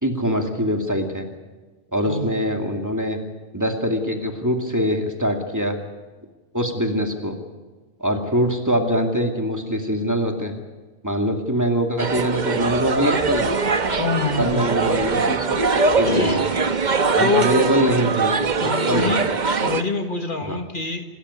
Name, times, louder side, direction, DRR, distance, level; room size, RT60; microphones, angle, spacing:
voice 1, 0.0-1.3 1.9-3.2 3.5-5.8 6.5-7.4 8.0-10.5 11.0-13.5 14.4-16.5 17.2-19.2 20.4-20.6, equal, 15° right, 3 dB, 2.4 m, -23 dB
voice 2, 2.0-2.4 14.0-14.8 16.0-16.4 17.2-17.5 18.6-19.2 19.6-21.0, left 3 dB, 50° left, 6 dB, 1.8 m, -24 dB
sound 1, 12.0-19.8, right 4 dB, 45° right, 1.1 m, -22 dB
27.0 x 13.5 x 9.6 m, 1.3 s
omnidirectional pair, 1.1 m